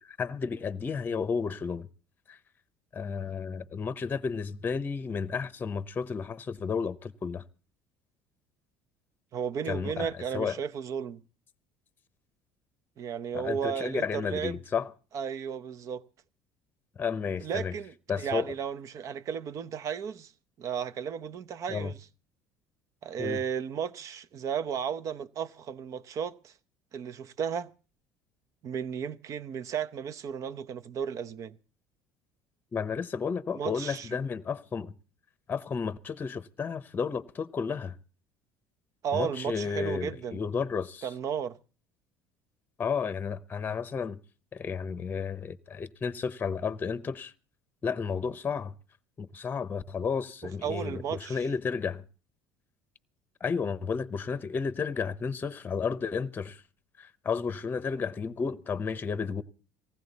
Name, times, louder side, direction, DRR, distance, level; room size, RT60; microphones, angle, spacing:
voice 1, 0.0-1.9 2.3-2.4 2.9-7.4 9.7-10.6 13.3-14.9 17.0-17.7 18.1-18.5 21.7-21.9 23.2-23.4 32.7-34.9 35.5-38.0 39.1-41.1 42.8-44.2 44.5-47.3 47.8-48.7 49.2-52.0 53.4-56.6 57.0-59.4, left 5 dB, 25° left, 0.8 m, -32 dB
voice 2, 9.3-11.2 13.0-14.6 15.1-16.0 17.4-20.3 20.6-22.0 23.0-26.5 26.9-27.7 28.6-31.6 33.5-34.1 39.0-40.4 41.0-41.6 50.6-51.5, right 7 dB, 50° right, 0.8 m, -34 dB
19.0 x 15.5 x 4.1 m
cardioid pair, 115°, 7 cm